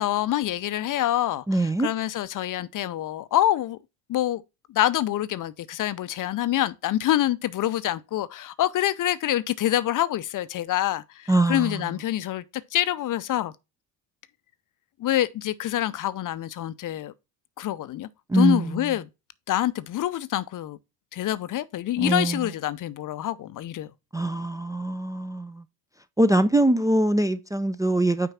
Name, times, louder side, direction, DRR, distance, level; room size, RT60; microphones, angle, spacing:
voice 1, 0.0-1.4 1.8-3.8 4.1-4.4 4.7-12.4 12.7-13.5 15.0-17.1 17.6-18.1 18.3-19.1 19.5-20.8 21.1-23.9, left 13 dB, 45° left, 0.6 m, -26 dB
voice 2, 1.5-1.9 11.3-11.9 18.3-18.9 22.0-22.5 24.1-25.6 26.2-28.3, right 1 dB, 10° right, 0.4 m, -23 dB
5.8 x 4.6 x 5.6 m
hypercardioid pair, 65°, 46 cm